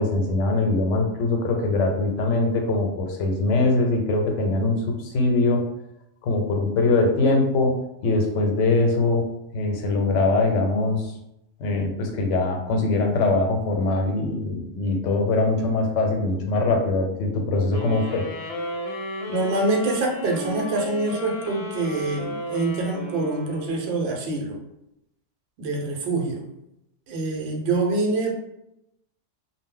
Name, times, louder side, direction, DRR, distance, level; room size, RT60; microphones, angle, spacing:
voice 1, 0.0-5.6 6.2-9.3 9.5-11.1 11.6-18.3, left 2 dB, 90° left, 2 dB, 0.9 m, -22 dB
sound 1, 17.7-24.1, left 1 dB, 65° left, 0.8 m, -34 dB
voice 2, 19.3-24.6 25.6-26.4 27.1-28.3, right 2 dB, 65° right, 0 dB, 0.8 m, -25 dB
2.1 x 2.0 x 3.6 m, 0.83 s
omnidirectional pair, 1.2 m